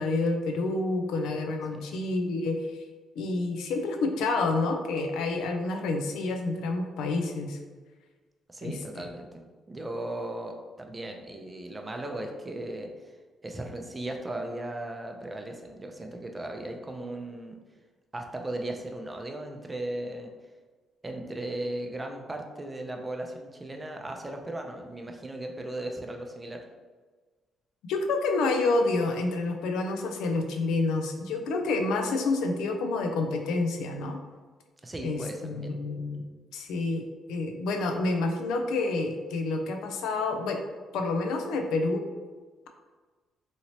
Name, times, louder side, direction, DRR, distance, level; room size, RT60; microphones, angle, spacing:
voice 1, 0.0-2.8 3.2-7.6 8.6-8.8 27.9-34.2 35.0-36.2 36.5-40.6 40.9-42.1, left 3 dB, 90° left, 4 dB, 0.4 m, -28 dB
voice 2, 8.5-9.4 9.7-13.1 13.4-17.6 18.1-20.3 21.0-26.6 34.8-35.7, right 1 dB, 20° right, 3 dB, 0.4 m, -37 dB
2.9 x 2.8 x 2.8 m, 1.4 s
cardioid pair, 90°, 0 cm